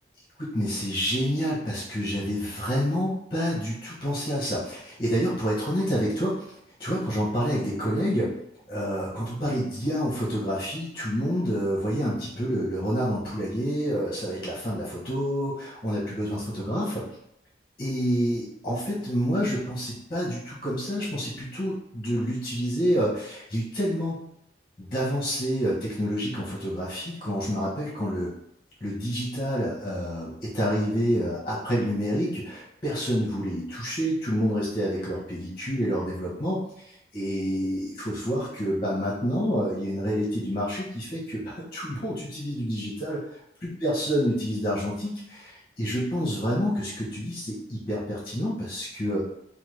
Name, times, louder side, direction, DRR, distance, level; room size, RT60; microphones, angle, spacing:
voice 1, 0.4-8.3 8.7-17.1 17.8-24.2 24.8-28.3 28.8-43.2 43.6-49.2, equal, 30° left, -6 dB, 0.8 m, -28 dB
3.2 x 2.1 x 3.1 m, 0.75 s
head